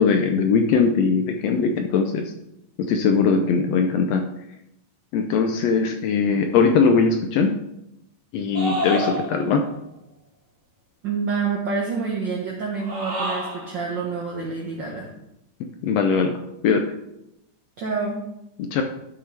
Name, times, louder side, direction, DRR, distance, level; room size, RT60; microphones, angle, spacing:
voice 1, 0.0-2.2 2.8-4.3 5.1-7.5 8.3-9.6 15.8-16.3 16.6-16.9 18.6-18.8, left 5 dB, 80° left, 5 dB, 1.5 m, -20 dB
sound 1, 8.5-9.6 12.7-13.8, equal, 35° right, 1.5 m, -28 dB
voice 2, 11.0-15.1 17.8-18.2, right 4 dB, 65° right, -2 dB, 1.1 m, -27 dB
11.5 x 5.8 x 3.3 m, 0.84 s
omnidirectional pair, 3.6 m